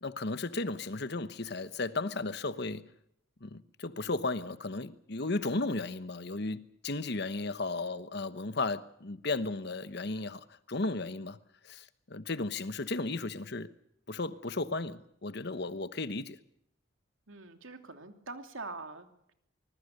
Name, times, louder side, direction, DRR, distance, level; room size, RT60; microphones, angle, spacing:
voice 1, 0.0-2.8 3.4-11.4 11.7-13.7 14.1-16.4, left 3 dB, 55° left, 1.1 m, -35 dB
voice 2, 17.3-19.3, right 3 dB, 80° right, 2.9 m, -44 dB
25.0 x 21.0 x 6.7 m
head